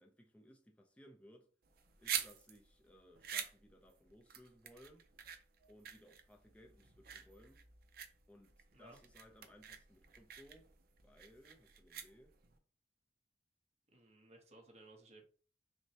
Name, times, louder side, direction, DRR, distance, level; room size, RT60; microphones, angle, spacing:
voice 1, 0.0-1.5 2.0-5.0 5.7-7.6 8.3-10.7 11.0-12.3, equal, 5° left, 0.5 m, -62 dB
sound 1, 1.6-12.6, right 8 dB, 55° right, 0.6 m, -46 dB
voice 2, 13.9-15.2, right 2 dB, 35° right, 0.9 m, -59 dB
6.1 x 2.1 x 2.8 m
head